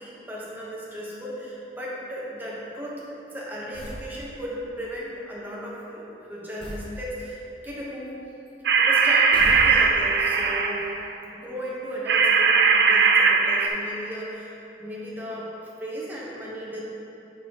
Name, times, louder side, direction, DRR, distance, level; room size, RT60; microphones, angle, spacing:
voice 1, 0.0-3.1 3.3-8.2 8.7-10.9 11.3-15.5 15.8-16.8, equal, 10° right, -6 dB, 1.0 m, -35 dB
sound 1, 3.7-4.1 6.6-6.9 9.3-10.1, equal, 30° left, 1.3 m, -35 dB
sound 2, 8.7-11.0 12.1-13.7, right 5 dB, 65° right, 0.4 m, -19 dB
7.8 x 6.3 x 3.0 m, 2.9 s
head